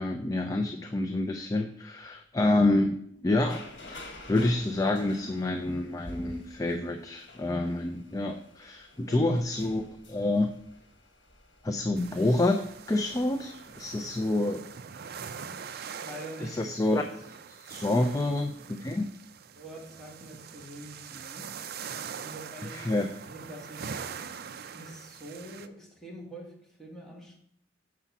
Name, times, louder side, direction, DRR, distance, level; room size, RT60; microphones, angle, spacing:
voice 1, 0.0-3.0 3.2-9.8 10.1-10.5 11.6-14.7 16.4-19.1 22.7-23.1, left 2 dB, 20° left, 5 dB, 0.4 m, -28 dB
sound 1, 3.4-14.4, left 1 dB, 70° left, 1.6 m, -50 dB
sound 2, 12.0-25.7, right 6 dB, 55° right, 0.4 m, -43 dB
voice 2, 16.0-16.6 19.5-22.9 23.3-24.2 24.7-27.4, right 1 dB, ahead, -3 dB, 1.6 m, -45 dB
6.9 x 4.8 x 5.8 m, 0.71 s
head